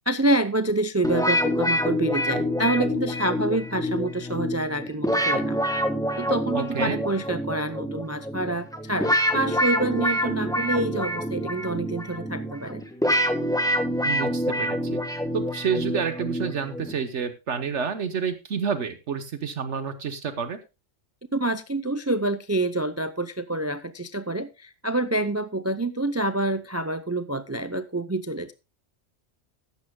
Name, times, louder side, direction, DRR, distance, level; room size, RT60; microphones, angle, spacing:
voice 1, 0.1-5.6 6.2-12.8 21.3-28.5, right 2 dB, 25° right, 12 dB, 0.3 m, -27 dB
sound 1, 1.0-17.0, equal, 5° left, 1.2 m, -26 dB
voice 2, 6.5-7.0 14.0-15.0 15.3-20.6, right 6 dB, 70° right, 9 dB, 1.3 m, -29 dB
15.0 x 11.5 x 2.2 m, 0.27 s
omnidirectional pair, 1.3 m